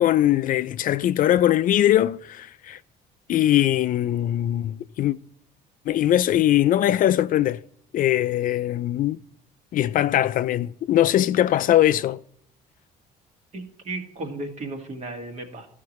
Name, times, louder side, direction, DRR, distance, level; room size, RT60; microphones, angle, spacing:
voice 1, 0.0-2.8 3.3-5.2 5.9-7.6 7.9-9.2 9.7-12.2, left 12 dB, 55° left, 0.4 m, -21 dB
voice 2, 13.5-15.7, right 2 dB, 45° right, 1.6 m, -34 dB
13.5 x 5.7 x 3.1 m
cardioid pair, 110°, 17 cm